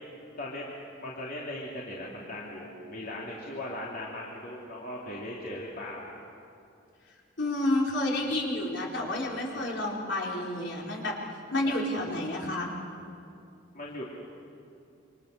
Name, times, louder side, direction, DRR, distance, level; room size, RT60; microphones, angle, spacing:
voice 1, 1.0-6.1 11.6-11.8 13.7-14.0, left 1 dB, 50° left, -5 dB, 3.1 m, -38 dB
voice 2, 7.4-11.1 11.5-12.7, left 1 dB, 65° left, -2 dB, 4.6 m, -30 dB
28.0 x 25.5 x 6.8 m, 2.5 s
head